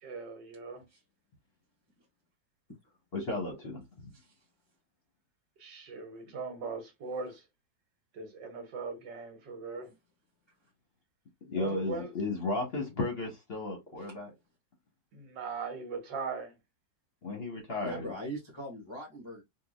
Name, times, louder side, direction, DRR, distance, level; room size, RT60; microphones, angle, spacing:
voice 1, 0.0-0.8 5.6-7.5 8.1-9.9 11.5-12.1 15.1-16.6, right 4 dB, 75° right, 1.6 m, -39 dB
voice 2, 3.1-3.8 11.4-14.3 17.2-18.1, left 2 dB, 40° left, 1.0 m, -34 dB
voice 3, 4.1-4.4 14.0-14.1 17.8-19.4, equal, 25° left, 0.6 m, -41 dB
3.8 x 2.7 x 2.3 m
omnidirectional pair, 1.9 m